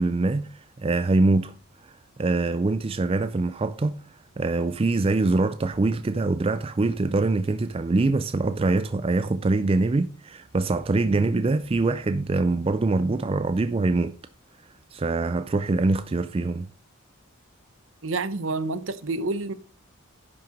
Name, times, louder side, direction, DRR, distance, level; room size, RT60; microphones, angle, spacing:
voice 1, 0.0-1.5 1.8-4.0 4.4-14.1 14.9-16.7, right 3 dB, 25° right, 0.4 m, -24 dB
voice 2, 18.0-19.5, right 3 dB, 65° right, 0.9 m, -29 dB
11.0 x 5.7 x 5.2 m
head